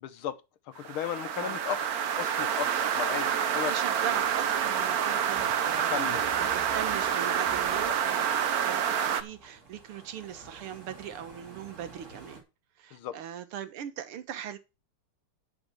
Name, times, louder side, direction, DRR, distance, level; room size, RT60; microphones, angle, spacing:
voice 1, 0.0-0.4 0.7-1.9 2.2-3.7 5.9-6.3 7.7-7.9 12.9-13.2, left 10 dB, 75° left, 1.8 m, -35 dB
sound 1, 0.8-9.2, right 8 dB, 55° right, 1.1 m, -28 dB
voice 2, 3.6-6.0 6.4-8.3 8.6-12.4 12.8-14.6, right 9 dB, 80° right, 2.0 m, -39 dB
sound 2, 4.0-12.4, right 3 dB, 35° right, 3.2 m, -52 dB
Livestock farm animals working animals, 5.3-9.8, right 1 dB, 10° right, 2.6 m, -49 dB
11.0 x 5.1 x 7.0 m
omnidirectional pair, 2.4 m